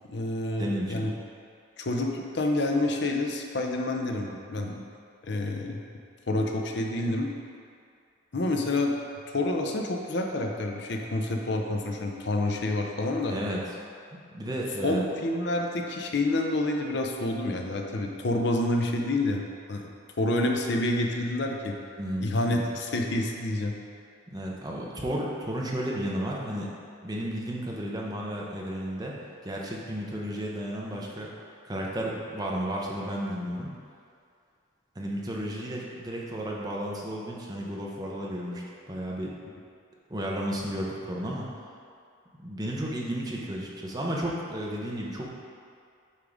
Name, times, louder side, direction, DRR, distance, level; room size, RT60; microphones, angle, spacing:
voice 1, 0.1-1.1 1.8-4.8 5.2-5.8 6.3-7.3 8.3-9.0 9.3-13.4 14.8-19.4 19.7-19.9 20.2-21.8 22.2-23.8, left 2 dB, 55° left, 1 dB, 0.6 m, -28 dB
voice 2, 0.6-1.1 4.6-4.8 13.3-13.6 14.3-15.0 22.0-22.3 24.3-26.7 27.0-29.1 29.4-31.3 31.6-33.7 35.0-39.3 40.1-41.5 42.4-45.3, equal, 20° right, -3 dB, 0.8 m, -33 dB
8.4 x 3.7 x 5.0 m, 2.3 s
head